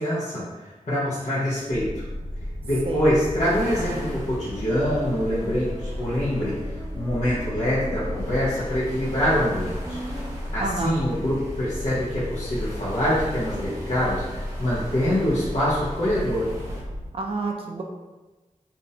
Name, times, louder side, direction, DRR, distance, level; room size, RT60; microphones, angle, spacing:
voice 1, 0.0-2.0 2.6-10.0 10.5-16.5, equal, 55° left, -11 dB, 0.7 m, -25 dB
sound 1, 1.5-10.4, equal, ahead, 0.8 m, -43 dB
sound 2, 1.7-17.1, left 1 dB, 70° right, 0.8 m, -34 dB
sound 3, 3.4-16.8, equal, 25° right, 1.0 m, -43 dB
voice 2, 10.6-11.0 17.1-17.8, right 3 dB, 45° right, 1 dB, 0.4 m, -28 dB
2.5 x 2.0 x 2.7 m, 1.2 s
wide cardioid pair, 60°, 14 cm